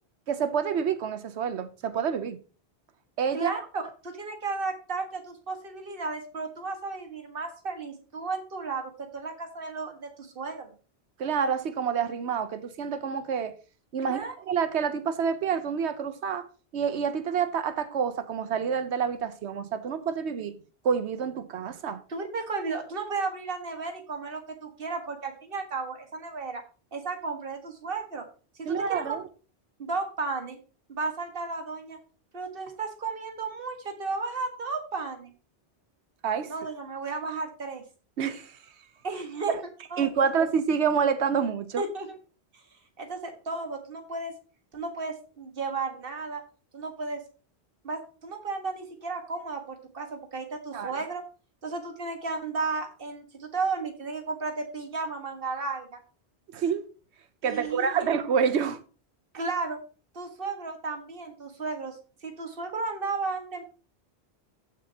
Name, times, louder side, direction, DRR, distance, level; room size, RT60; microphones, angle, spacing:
voice 1, 0.3-2.4 3.2-3.5 11.2-13.5 13.9-16.5 16.7-20.6 20.8-22.0 28.7-29.2 36.2-36.5 38.2-38.6 40.0-41.8 50.7-51.0 56.5-56.8 57.4-58.8, right 6 dB, 85° right, 1.1 m, -28 dB
voice 2, 3.3-10.7 14.0-14.3 22.1-26.6 26.9-28.3 28.6-29.1 29.8-30.6 30.9-32.0 32.3-35.3 36.5-37.8 39.0-39.5 39.9-40.3 41.8-42.1 43.0-44.3 44.7-46.4 46.7-47.2 47.8-51.2 51.6-56.0 57.4-58.1 59.3-59.8 60.1-63.6, right 4 dB, 55° right, 1.7 m, -34 dB
14.5 x 6.5 x 2.8 m
omnidirectional pair, 1.1 m